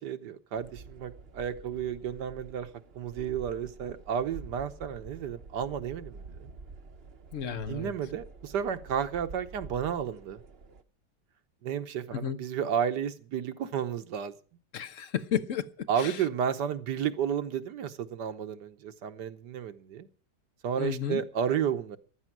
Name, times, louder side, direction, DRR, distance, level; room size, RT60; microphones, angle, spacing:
voice 1, 0.0-2.7 2.9-6.5 7.5-10.4 11.6-14.3 15.9-20.1 20.6-22.0, right 8 dB, 75° right, 1.6 m, -32 dB
sound 1, 0.5-10.8, right 4 dB, 40° right, 1.0 m, -48 dB
voice 2, 7.3-7.9 12.1-12.4 14.7-16.2 20.8-21.2, left 9 dB, 50° left, 1.2 m, -33 dB
14.5 x 12.5 x 6.0 m
omnidirectional pair, 1.9 m